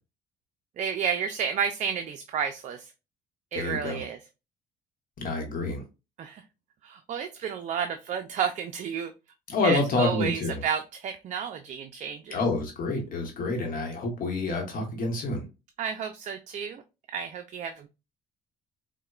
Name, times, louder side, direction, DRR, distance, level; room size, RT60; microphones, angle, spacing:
voice 1, 0.8-2.9 3.5-4.2 6.2-6.4 6.8-9.1 9.6-12.4 15.8-16.8 17.1-17.9, right 7 dB, 45° right, 0.4 m, -31 dB
voice 2, 3.5-4.1 5.2-5.8 9.5-10.6 12.3-15.5, left 3 dB, 55° left, 1.0 m, -28 dB
4.1 x 2.1 x 2.3 m
cardioid pair, 110°, 17 cm